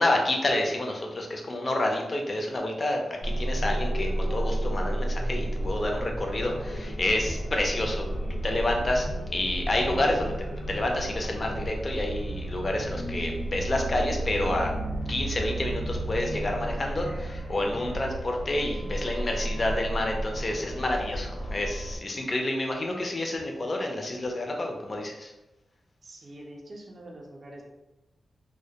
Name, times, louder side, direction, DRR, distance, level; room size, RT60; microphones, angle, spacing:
voice 1, 0.0-8.1 8.4-9.1 9.3-14.7 15.1-25.3, left 1 dB, 35° left, 2 dB, 0.4 m, -29 dB
sound 1, 3.2-22.0, right 1 dB, 80° left, 1.0 m, -32 dB
voice 2, 26.0-27.6, right 1 dB, 40° right, -1 dB, 0.4 m, -44 dB
2.1 x 2.1 x 2.7 m, 1.0 s
wide cardioid pair, 115°, 0 cm